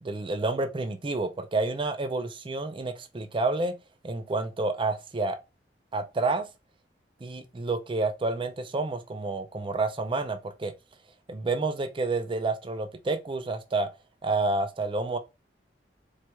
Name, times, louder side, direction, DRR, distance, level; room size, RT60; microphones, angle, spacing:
voice 1, 0.0-3.7 4.0-5.4 5.9-6.5 7.2-10.7 11.3-13.9 14.2-15.2, right 3 dB, 30° right, 0.4 m, -29 dB
4.4 x 3.2 x 2.2 m
head